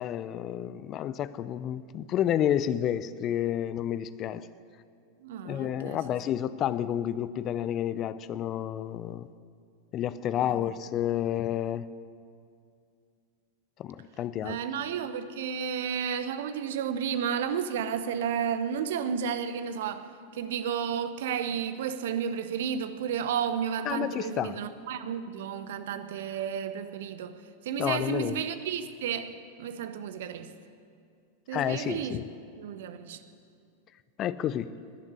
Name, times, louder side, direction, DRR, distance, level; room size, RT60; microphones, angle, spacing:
voice 1, 0.0-4.5 5.4-9.3 9.9-11.9 13.8-14.6 23.9-24.6 27.8-28.4 31.5-32.3 34.2-34.8, left 11 dB, 35° left, 0.5 m, -30 dB
voice 2, 5.2-6.0 10.4-10.6 14.4-27.4 27.6-30.5 31.5-32.2 32.6-33.2, right 7 dB, 55° right, 0.9 m, -32 dB
19.5 x 7.3 x 9.5 m
figure-of-eight pair, 90°, 0 cm